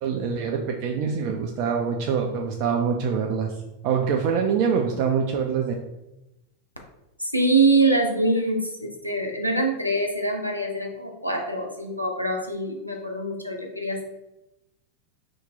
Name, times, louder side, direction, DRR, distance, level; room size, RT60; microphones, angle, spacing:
voice 1, 0.0-3.5 3.8-5.7, right 6 dB, 45° right, 2 dB, 0.3 m, -25 dB
voice 2, 7.2-14.0, right 2 dB, 90° left, 2 dB, 0.5 m, -24 dB
2.8 x 2.1 x 3.9 m, 0.92 s
figure-of-eight pair, 90°, 0 cm